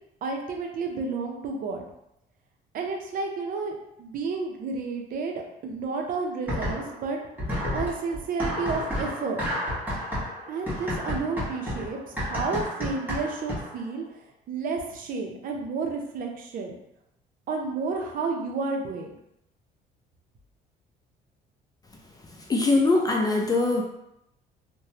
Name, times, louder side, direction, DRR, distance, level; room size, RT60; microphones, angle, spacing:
voice 1, 0.2-1.8 2.7-7.2 7.7-9.6 10.5-14.0 14.5-16.7 17.5-19.1, right 4 dB, 55° right, 2 dB, 0.6 m, -31 dB
sound 1, 6.5-7.1 7.4-13.8, equal, 10° right, 1.1 m, -31 dB
voice 2, 22.5-23.8, left 3 dB, 20° left, 1 dB, 0.4 m, -22 dB
3.1 x 2.2 x 2.8 m, 0.81 s
cardioid pair, 110°, 17 cm